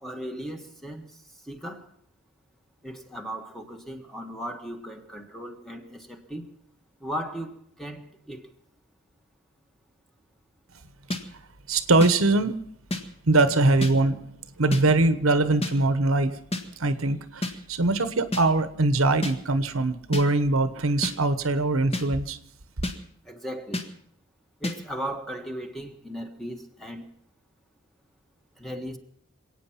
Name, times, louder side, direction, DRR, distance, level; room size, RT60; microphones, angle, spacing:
voice 1, 0.0-1.9 2.8-6.5 7.0-8.5 23.2-23.8 24.6-27.1 28.6-29.0, equal, ahead, 1.5 m, -37 dB
sound 1, 11.1-11.2 12.0-12.1 12.9-13.0 13.8-13.9 14.7-14.8 15.6-15.7 16.5-16.6 17.4-17.5 18.3-18.4 19.2-19.3 20.1-20.2 21.0-21.1 21.9-22.1 22.8-23.0 23.7-23.9 24.6-24.8, left 1 dB, 30° left, 1.7 m, -29 dB
voice 2, 11.7-12.5 13.3-14.2 14.6-16.4 16.8-22.4, right 2 dB, 90° right, 1.1 m, -22 dB
26.5 x 9.1 x 5.8 m
head